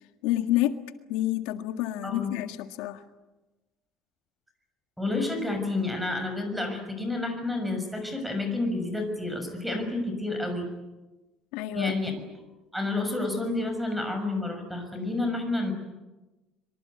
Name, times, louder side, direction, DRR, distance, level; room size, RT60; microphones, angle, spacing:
voice 1, 0.2-0.7 1.1-3.0 11.5-11.9, left 14 dB, 85° left, 7 dB, 1.7 m, -28 dB
voice 2, 5.0-10.7 11.7-12.1 12.7-15.7, left 2 dB, ahead, 6 dB, 6.3 m, -30 dB
25.5 x 24.0 x 9.6 m, 1.1 s
cardioid pair, 150°, 0 cm